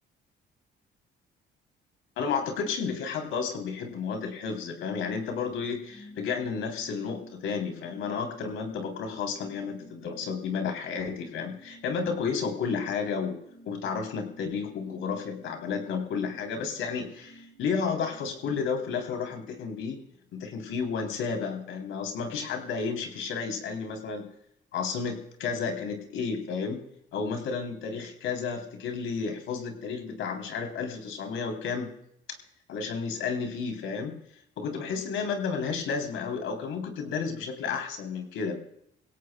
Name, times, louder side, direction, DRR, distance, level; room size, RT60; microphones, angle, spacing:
voice 1, 2.2-13.4 13.6-20.0 20.3-24.3 24.7-26.8 27.1-31.9 32.7-34.2 34.6-38.6, left 5 dB, 85° left, 4 dB, 3.3 m, -32 dB
sound 1, 5.4-20.4 20.7-20.8, right 1 dB, 30° left, 4.4 m, -54 dB
23.0 x 17.0 x 2.2 m, 0.73 s
cardioid pair, 90°, 20 cm